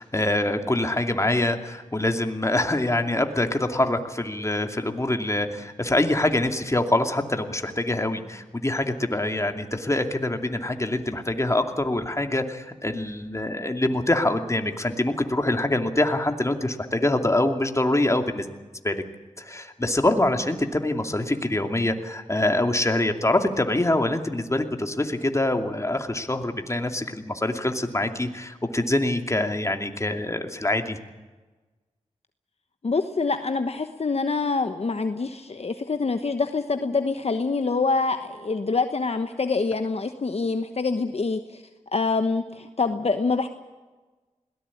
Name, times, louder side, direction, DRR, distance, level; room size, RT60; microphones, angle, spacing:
voice 1, 0.0-18.5 18.8-19.0 19.4-31.0, left 1 dB, 25° left, 5 dB, 2.6 m, -25 dB
voice 2, 32.8-41.6 41.9-43.5, left 4 dB, 55° left, 8 dB, 1.1 m, -25 dB
21.5 x 18.0 x 8.6 m, 1.3 s
cardioid pair, 45°, 13 cm